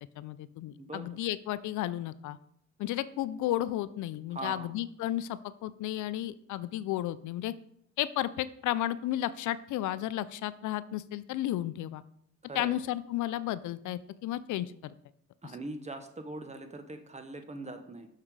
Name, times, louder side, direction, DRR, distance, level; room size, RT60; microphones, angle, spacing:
voice 1, 0.2-2.4 2.8-7.5 8.0-12.0 12.5-14.9, left 13 dB, 75° left, 15 dB, 0.5 m, -33 dB
voice 2, 0.8-1.2 4.3-4.7 12.4-12.8 15.4-18.1, right 2 dB, 20° right, 8 dB, 1.0 m, -41 dB
6.5 x 5.8 x 4.7 m, 0.69 s
cardioid pair, 90°, 30 cm